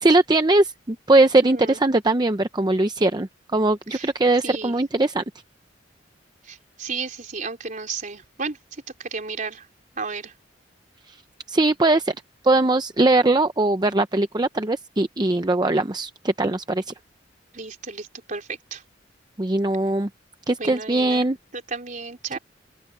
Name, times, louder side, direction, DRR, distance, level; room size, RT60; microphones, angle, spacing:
voice 1, 0.0-5.2 11.1-11.2 11.5-12.1 12.4-16.9 19.4-20.1 20.5-21.4 22.3-22.4, right 2 dB, 20° right, 0.7 m, -20 dB
voice 2, 1.4-1.8 3.9-4.1 4.4-4.8 6.4-8.6 9.0-9.7 10.0-10.3 17.5-18.8 20.6-21.3 21.7-22.4, right 4 dB, 45° right, 3.7 m, -33 dB
head